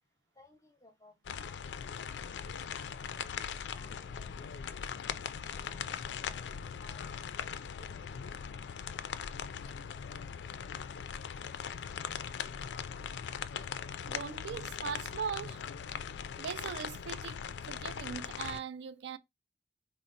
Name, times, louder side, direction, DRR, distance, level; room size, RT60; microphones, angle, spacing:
voice 1, 0.4-2.0 2.3-4.7 6.8-7.1 7.4-7.5 7.8-8.0, left 1 dB, 15° left, 0.6 m, -62 dB
sound 1, 1.2-18.6, left 7 dB, 75° left, 0.3 m, -40 dB
voice 2, 14.0-15.6 16.4-19.2, right 6 dB, 75° right, 0.3 m, -40 dB
4.1 x 2.0 x 3.8 m
head